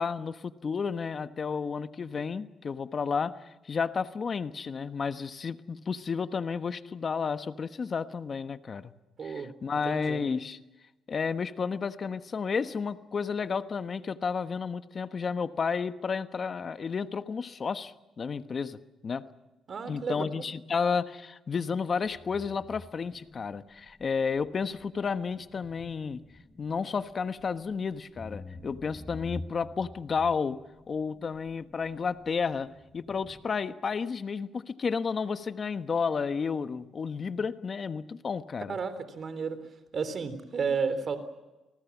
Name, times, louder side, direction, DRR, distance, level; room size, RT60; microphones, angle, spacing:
voice 1, 0.0-8.9 9.2-10.6 11.1-19.3 19.9-26.2 26.6-38.8, left 5 dB, 40° left, 11 dB, 1.2 m, -32 dB
voice 2, 9.2-9.5 9.9-10.3 19.7-20.5 38.7-39.6 39.9-41.2, right 5 dB, 50° right, 12 dB, 3.5 m, -32 dB
sound 1, 22.0-33.5, left 2 dB, 20° left, 4.8 m, -49 dB
29.5 x 19.5 x 7.3 m, 1.1 s
cardioid pair, 90°, 0 cm